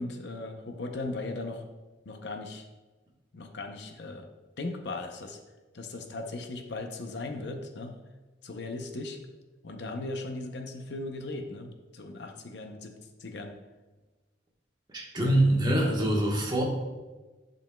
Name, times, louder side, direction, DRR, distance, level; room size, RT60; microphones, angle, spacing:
voice 1, 0.0-1.6 2.1-2.7 3.3-4.3 4.6-5.4 5.7-7.9 8.4-9.2 9.6-12.9 13.2-13.5, left 2 dB, 65° left, 5 dB, 0.6 m, -37 dB
voice 2, 14.9-16.6, right 1 dB, 25° right, -2 dB, 1.2 m, -24 dB
10.5 x 5.3 x 2.2 m, 1.2 s
head